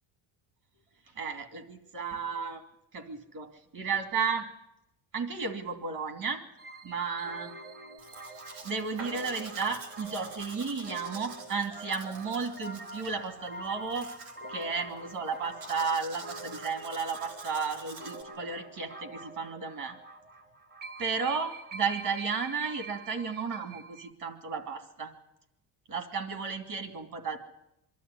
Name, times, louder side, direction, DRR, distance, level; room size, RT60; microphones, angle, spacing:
voice 1, 1.1-2.6 2.9-4.5 5.1-6.4 6.8-7.5 8.6-14.1 14.5-20.0 21.0-25.1 25.9-27.4, right 5 dB, 45° right, 7 dB, 2.7 m, -33 dB
sound 1, 6.6-24.1, right 2 dB, 20° right, 1.0 m, -45 dB
Domestic sounds home sounds, 8.0-18.2, right 4 dB, 75° right, 3.3 m, -48 dB
24.0 x 12.5 x 9.9 m, 0.84 s
cardioid pair, 165°, 47 cm